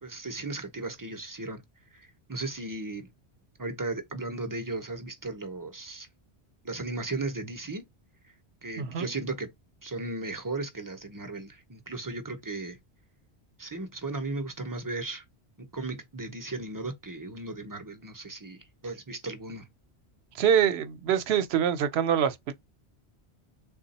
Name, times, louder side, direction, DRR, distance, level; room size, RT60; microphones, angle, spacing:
voice 1, 0.0-1.6 1.9-3.1 3.6-6.1 6.6-7.9 8.6-9.5 9.8-12.8 13.6-15.2 15.6-19.7, right 2 dB, 25° right, 0.5 m, -36 dB
voice 2, 8.8-9.1 20.4-22.5, right 8 dB, 70° right, 0.8 m, -25 dB
3.5 x 2.2 x 4.0 m
omnidirectional pair, 1.1 m